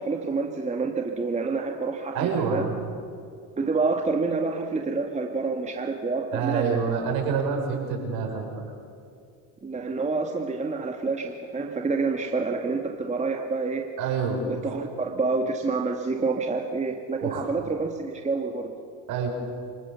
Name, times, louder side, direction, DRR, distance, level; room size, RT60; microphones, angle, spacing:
voice 1, 0.0-2.6 3.6-6.8 9.6-13.9 14.5-18.7, right 4 dB, 15° right, 2 dB, 1.7 m, -28 dB
voice 2, 2.1-2.9 6.3-8.6 14.0-14.9 17.2-17.5 19.1-19.3, right 5 dB, 60° right, 1 dB, 6.1 m, -27 dB
27.0 x 18.5 x 6.9 m, 2.4 s
supercardioid pair, 95°, 41 cm